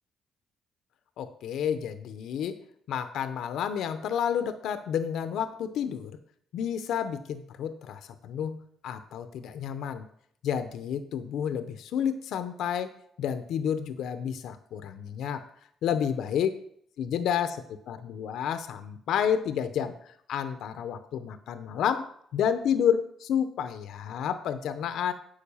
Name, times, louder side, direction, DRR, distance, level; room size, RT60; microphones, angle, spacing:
voice 1, 1.2-2.6 2.9-6.1 6.5-10.1 10.4-12.9 13.2-15.4 15.8-16.5 17.0-25.1, left 8 dB, 80° left, 10 dB, 0.7 m, -30 dB
8.8 x 4.8 x 7.0 m, 0.65 s
cardioid pair, 90°, 0 cm